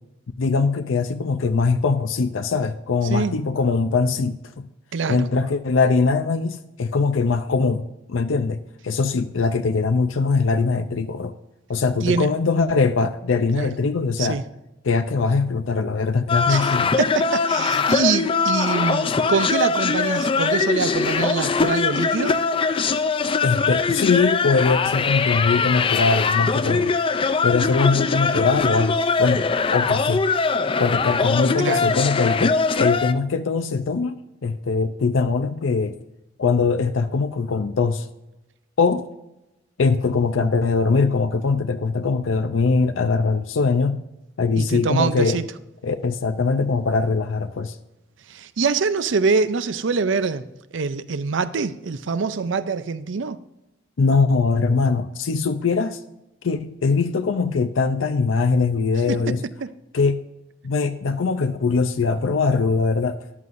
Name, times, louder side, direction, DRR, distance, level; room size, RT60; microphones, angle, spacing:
voice 1, 0.4-4.4 5.1-8.6 8.8-11.3 11.7-14.4 14.8-16.9 23.4-26.9 27.4-29.5 29.7-30.2 30.8-36.0 36.4-38.1 38.8-39.1 39.8-44.0 44.4-45.4 45.8-47.8 54.0-56.0 56.4-59.4 59.9-60.2 60.6-63.2, left 4 dB, 90° left, 0.5 m, -21 dB
voice 2, 4.9-5.3 12.0-12.3 13.5-13.7 14.2-14.4 16.5-16.7 17.0-22.4 31.6-31.9 44.5-45.5 48.3-50.5 50.7-53.4 59.1-59.3 59.6-59.7, right 4 dB, 70° right, 0.5 m, -24 dB
sound 1, 16.3-33.1, left 4 dB, 30° left, 0.4 m, -22 dB
13.5 x 11.0 x 2.6 m
head